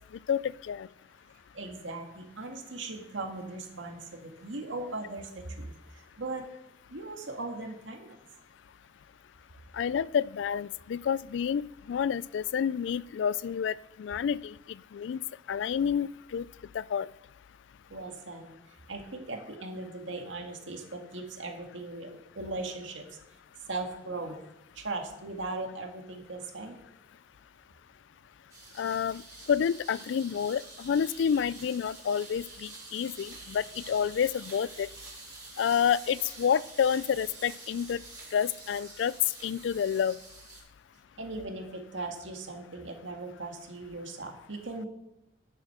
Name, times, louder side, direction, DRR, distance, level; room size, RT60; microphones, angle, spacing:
voice 1, 0.3-0.9 9.7-13.7 14.0-14.5 14.9-15.2 15.5-16.5 16.7-17.1 28.8-29.2 29.5-34.9 35.6-38.0 38.3-39.1 39.4-40.2, left 7 dB, 70° left, 21 dB, 0.3 m, -29 dB
voice 2, 1.5-5.3 5.6-5.7 6.2-6.4 6.9-8.2 17.9-18.5 18.9-23.0 23.7-24.4 24.8-26.8 41.2-44.9, right 2 dB, 90° right, 3 dB, 1.9 m, -38 dB
sound 1, 28.5-40.6, right 3 dB, 20° right, 4.9 m, -47 dB
11.0 x 7.6 x 5.9 m, 0.88 s
head